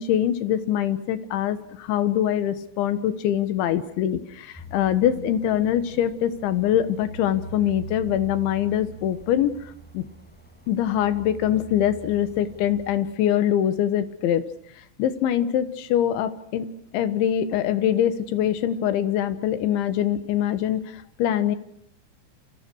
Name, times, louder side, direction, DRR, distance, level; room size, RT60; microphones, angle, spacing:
voice 1, 0.0-10.0 10.7-14.5 15.0-16.7 16.9-21.6, left 10 dB, 70° left, 12 dB, 3.7 m, -23 dB
sound 1, 4.6-13.0, right 3 dB, ahead, 5.4 m, -42 dB
29.0 x 27.0 x 6.5 m, 0.69 s
omnidirectional pair, 5.7 m